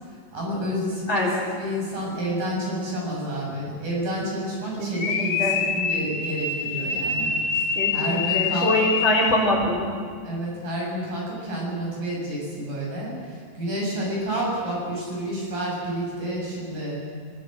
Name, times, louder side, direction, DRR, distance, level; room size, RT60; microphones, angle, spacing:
voice 1, 0.3-8.9 10.2-17.0, equal, 65° right, -3 dB, 9.3 m, -29 dB
voice 2, 1.1-1.4 4.8-5.6 7.8-9.9, left 1 dB, 35° left, -2 dB, 4.4 m, -24 dB
sound 1, 4.9-9.7, left 5 dB, 55° left, 2.3 m, -26 dB
27.0 x 16.5 x 7.8 m, 2.1 s
omnidirectional pair, 4.1 m